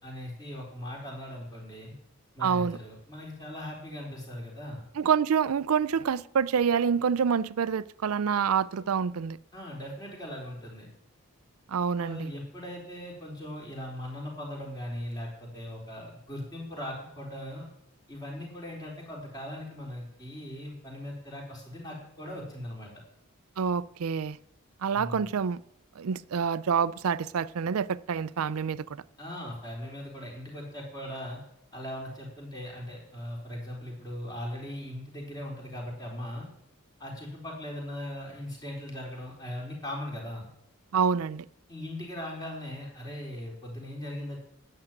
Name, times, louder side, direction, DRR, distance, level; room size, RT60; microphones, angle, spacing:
voice 1, 0.0-1.9 2.4-4.8 9.5-10.9 12.0-17.6 18.1-22.9 24.9-25.3 29.2-31.4 31.7-36.5 37.0-40.5 41.7-44.4, left 1 dB, 20° left, 4.1 m, -39 dB
voice 2, 2.4-2.8 5.0-9.4 11.7-12.3 23.6-24.4 24.8-25.6 26.0-29.0 40.9-41.4, right 6 dB, 80° right, 0.4 m, -27 dB
12.0 x 7.6 x 9.1 m
head